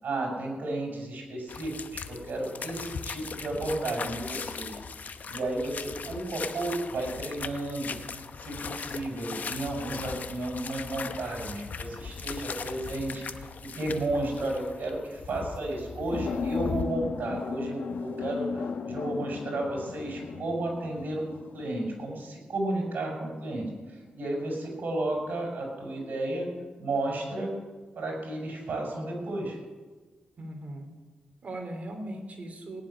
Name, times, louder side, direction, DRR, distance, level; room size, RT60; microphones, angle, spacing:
voice 1, 0.0-4.8 5.3-8.0 8.4-13.2 13.6-21.2 21.5-26.5 26.8-27.5 27.9-29.6, right 2 dB, 70° right, 0 dB, 6.0 m, -33 dB
sound 1, 1.5-16.9, left 5 dB, 60° left, 0.9 m, -39 dB
sound 2, 16.1-22.1 25.0-25.4, left 5 dB, 85° left, 1.0 m, -35 dB
voice 2, 30.4-30.9 31.4-32.8, right 1 dB, 50° right, 3 dB, 3.2 m, -38 dB
18.0 x 7.4 x 10.0 m, 1.4 s
cardioid pair, 95°, 3 cm